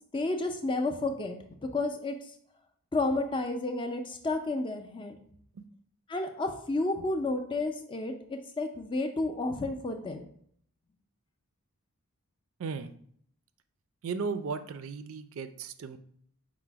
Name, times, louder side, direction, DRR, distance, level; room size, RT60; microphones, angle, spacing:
voice 1, 0.1-1.4 1.7-2.1 2.9-5.2 6.1-10.2, left 2 dB, 20° left, 5 dB, 0.4 m, -31 dB
voice 2, 12.6-12.9 14.0-16.0, right 5 dB, 65° right, 10 dB, 0.4 m, -35 dB
4.8 x 2.0 x 4.4 m, 0.63 s
head